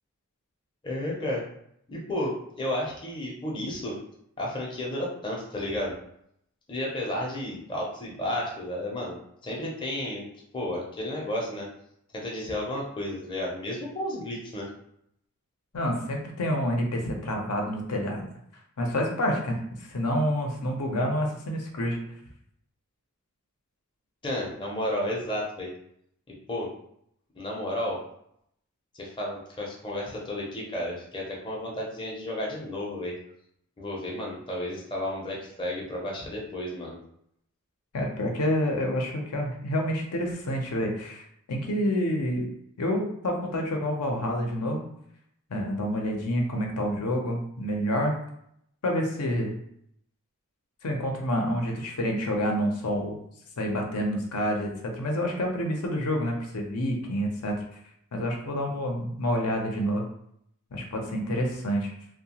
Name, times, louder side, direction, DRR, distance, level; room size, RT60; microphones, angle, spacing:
voice 1, 0.8-1.5 1.9-4.0 4.4-6.0 6.7-10.3 10.5-11.7 12.1-14.7 24.2-25.7 26.3-26.7 27.3-28.0 28.9-33.1 33.8-37.0, left 1 dB, 20° left, -3 dB, 0.5 m, -32 dB
voice 2, 15.7-18.3 18.8-22.0 37.9-42.5 42.8-44.8 45.5-48.1 48.8-49.5 50.8-53.2 53.6-57.6 58.1-60.0 60.7-61.9, equal, 90° left, 1 dB, 0.6 m, -28 dB
2.7 x 2.1 x 2.8 m, 0.73 s
head